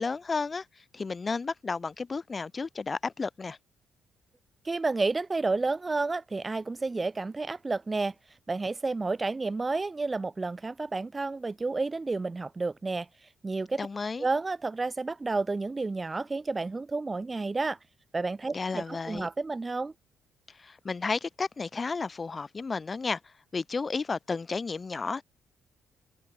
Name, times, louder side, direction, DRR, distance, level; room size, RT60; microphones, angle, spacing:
voice 1, 0.0-3.6 13.8-14.3 18.5-19.3 20.5-25.2, left 4 dB, 30° left, 1.1 m, -33 dB
voice 2, 4.6-8.1 8.5-13.1 13.4-13.9 14.2-17.8 18.1-19.9, right 3 dB, 25° right, 0.8 m, -30 dB
cardioid pair, 90°, 0 cm